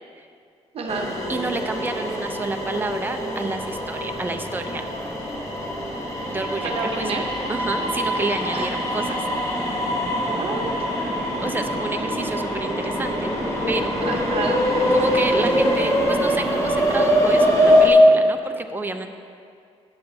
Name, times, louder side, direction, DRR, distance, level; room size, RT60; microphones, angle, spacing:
voice 1, 0.7-1.1 6.6-7.2 8.5-8.7 10.3-10.7 14.0-14.6, right 4 dB, 60° right, 2 dB, 0.9 m, -29 dB
sound 1, 0.9-17.9, equal, 25° left, 1.5 m, -23 dB
voice 2, 1.3-4.9 6.3-7.2 7.5-9.2 11.4-13.3 13.7-14.0 14.9-19.1, right 3 dB, 15° right, 6 dB, 0.7 m, -29 dB
13.5 x 8.9 x 2.8 m, 2.3 s
cardioid pair, 110°, 11 cm